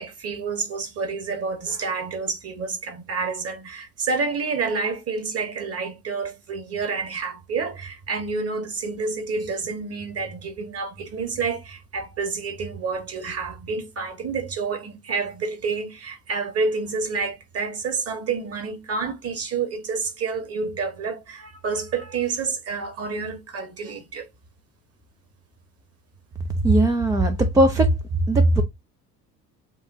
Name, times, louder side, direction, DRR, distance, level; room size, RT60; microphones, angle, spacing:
voice 1, 0.0-24.3, right 4 dB, 30° right, 1.4 m, -29 dB
voice 2, 26.6-27.9 28.3-28.6, right 1 dB, 10° right, 0.3 m, -18 dB
7.2 x 2.6 x 2.6 m
figure-of-eight pair, 65°, 49 cm